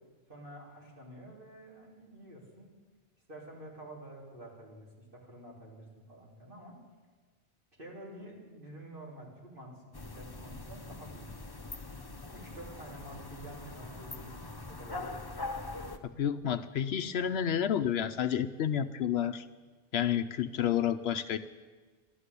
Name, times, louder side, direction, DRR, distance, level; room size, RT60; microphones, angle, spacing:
voice 1, 0.3-2.7 3.3-6.7 7.8-11.8 12.3-15.2, right 1 dB, 50° right, -3 dB, 3.5 m, -49 dB
sound 1, 9.9-16.0, left 2 dB, 25° left, 0.7 m, -42 dB
voice 2, 16.2-19.5 19.9-21.4, left 9 dB, 70° left, 10 dB, 0.8 m, -30 dB
13.0 x 12.0 x 8.2 m, 1.4 s
omnidirectional pair, 1.2 m